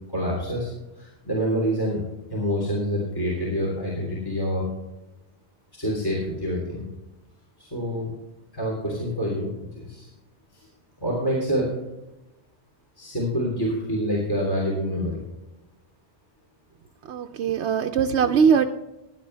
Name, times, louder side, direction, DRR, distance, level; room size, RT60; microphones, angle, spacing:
voice 1, 0.1-0.7 0.9-2.0 2.3-4.7 5.7-6.9 7.6-8.1 8.5-10.1 10.5-10.7 11.0-11.7 13.0-15.2, equal, 20° left, -3 dB, 3.3 m, -27 dB
voice 2, 17.1-18.7, right 6 dB, 75° right, 4 dB, 0.9 m, -21 dB
16.0 x 10.0 x 3.3 m, 0.97 s
omnidirectional pair, 1.1 m